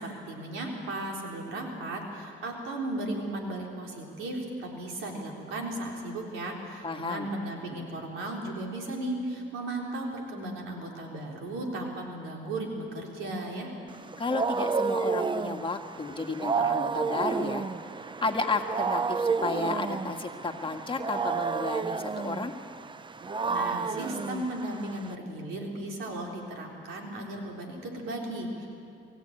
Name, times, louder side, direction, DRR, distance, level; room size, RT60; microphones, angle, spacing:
voice 1, 0.0-13.7 23.5-28.7, right 1 dB, 90° right, 0 dB, 3.9 m, -36 dB
voice 2, 6.8-7.3 14.2-17.7 18.2-22.5, left 3 dB, 25° left, 4 dB, 1.8 m, -32 dB
Wild animals, 13.9-25.1, right 5 dB, 25° right, 0.6 m, -31 dB
23.0 x 16.0 x 8.9 m, 2.5 s
cardioid pair, 90°, 20 cm